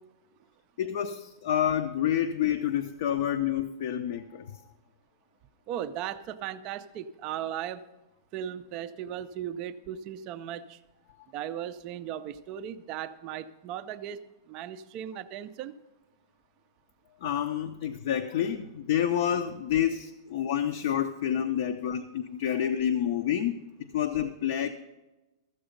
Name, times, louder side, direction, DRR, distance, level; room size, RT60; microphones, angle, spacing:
voice 1, 0.8-4.5 17.2-24.7, left 10 dB, 40° left, 5 dB, 0.5 m, -28 dB
voice 2, 5.7-7.8 8.3-10.8 11.3-14.2 14.5-15.7, right 10 dB, 25° right, 11 dB, 0.4 m, -37 dB
13.5 x 7.8 x 5.1 m, 1.1 s
supercardioid pair, 175°, 2 cm